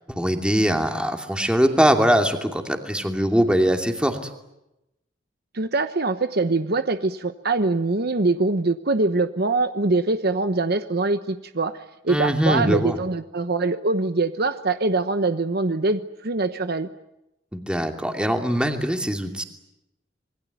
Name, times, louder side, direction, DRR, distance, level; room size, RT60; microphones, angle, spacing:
voice 1, 0.1-4.2 12.1-13.0 17.5-19.4, equal, 5° right, 4 dB, 2.7 m, -22 dB
voice 2, 5.5-11.7 12.0-16.9, right 3 dB, 55° right, 10 dB, 1.1 m, -23 dB
27.0 x 21.5 x 9.4 m, 0.89 s
head